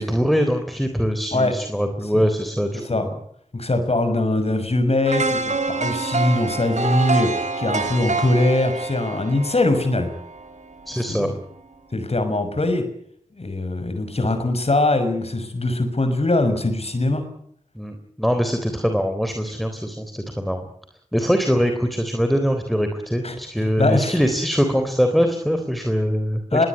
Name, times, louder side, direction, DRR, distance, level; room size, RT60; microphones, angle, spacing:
voice 1, 0.0-3.2 10.9-11.3 17.8-20.6 21.1-26.4, equal, ahead, 6 dB, 3.6 m, -22 dB
voice 2, 2.7-3.1 3.5-10.1 10.9-11.3 11.9-12.8 13.3-17.2 23.2-24.2 26.5-26.7, left 2 dB, 50° left, 8 dB, 6.1 m, -22 dB
sound 1, 5.1-11.1 11.5-11.6, right 3 dB, 65° right, 3.5 m, -27 dB
22.5 x 18.0 x 9.6 m, 0.67 s
cardioid pair, 50°, 13 cm